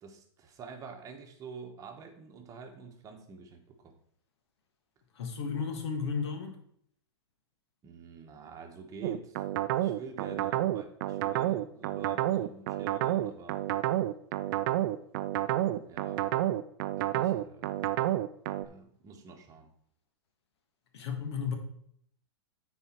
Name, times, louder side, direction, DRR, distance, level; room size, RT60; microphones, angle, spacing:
voice 1, 0.0-4.0 7.8-9.4 9.8-13.6 15.9-16.2 16.9-17.8 18.6-19.7, right 4 dB, 25° right, 4 dB, 1.2 m, -47 dB
voice 2, 5.2-6.6 20.9-21.5, left 6 dB, 70° left, 5 dB, 1.7 m, -33 dB
sound 1, 9.0-18.7, right 14 dB, 50° right, 0.5 m, -29 dB
9.0 x 4.2 x 4.5 m, 0.68 s
hypercardioid pair, 135°, 15 cm